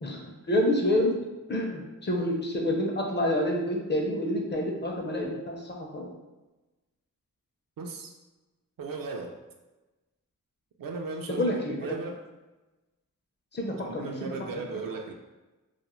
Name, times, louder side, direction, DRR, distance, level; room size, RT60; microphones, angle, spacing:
voice 1, 0.0-1.2 1.5-6.1 11.3-12.0 13.5-14.3, left 1 dB, 30° left, 0 dB, 0.5 m, -28 dB
voice 2, 7.8-8.1 8.8-9.4 10.8-12.2 13.8-15.1, right 4 dB, 70° right, 2 dB, 0.5 m, -36 dB
2.4 x 2.1 x 3.0 m, 1.1 s
cardioid pair, 65°, 35 cm